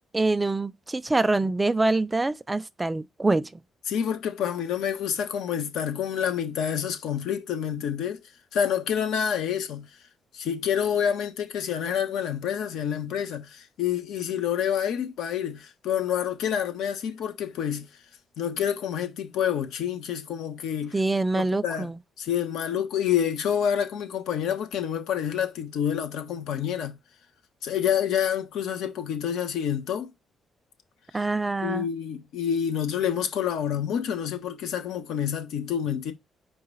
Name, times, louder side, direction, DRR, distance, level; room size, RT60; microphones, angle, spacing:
voice 1, 0.1-3.6 20.9-22.0 31.1-31.9, right 2 dB, 20° right, 0.4 m, -25 dB
voice 2, 3.9-8.2 8.5-9.9 10.3-17.9 18.4-20.9 21.3-21.9 22.2-27.0 27.6-30.1 31.6-36.1, left 9 dB, 85° left, 1.2 m, -28 dB
4.8 x 3.7 x 5.4 m
cardioid pair, 90°, 0 cm